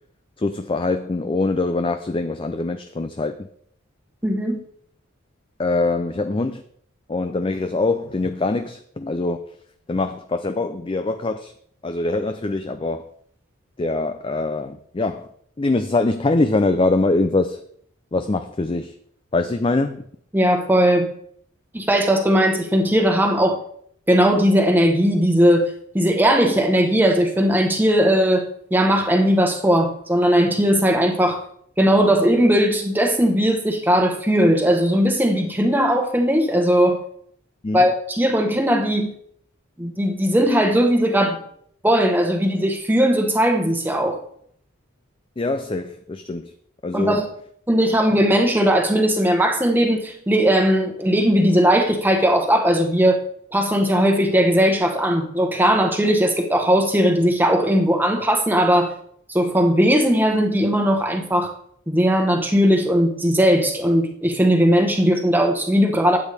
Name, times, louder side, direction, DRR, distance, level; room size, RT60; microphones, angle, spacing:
voice 1, 0.4-3.5 5.6-6.6 7.1-9.6 9.9-11.5 11.8-13.1 13.8-15.3 15.6-17.6 18.1-19.0 19.3-20.1 37.6-37.8 45.4-46.5 46.8-47.2, left 2 dB, 25° left, 0.4 m, -23 dB
voice 2, 4.2-4.6 20.3-21.1 21.7-23.6 24.1-31.4 31.8-37.0 37.7-39.1 39.8-41.4 41.8-44.2 46.9-47.2 47.7-53.2 53.5-58.9 59.3-61.5 61.9-66.2, equal, 10° right, 1.1 m, -18 dB
12.0 x 8.3 x 3.4 m
head